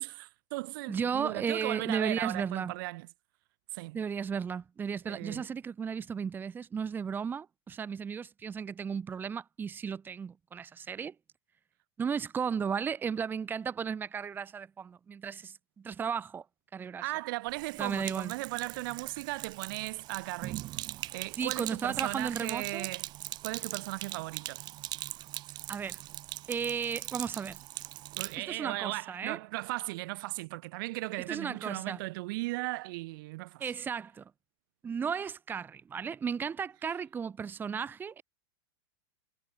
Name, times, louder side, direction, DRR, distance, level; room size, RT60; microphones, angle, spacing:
voice 1, 0.0-3.1 3.7-4.0 5.1-5.5 17.0-20.7 21.1-23.1 23.4-24.6 28.2-33.6, right 22 dB, 55° right, 1.9 m, -37 dB
voice 2, 0.9-2.7 3.9-11.1 12.0-15.5 15.8-16.4 16.7-17.0 17.8-18.3 21.4-22.9 25.7-26.0 26.5-27.6 28.4-29.4 31.3-32.0 33.6-34.3 34.8-38.2, right 6 dB, 15° right, 1.5 m, -34 dB
Sink (filling or washing), 17.5-28.4, right 16 dB, 30° right, 2.1 m, -41 dB
supercardioid pair, 150°, 14 cm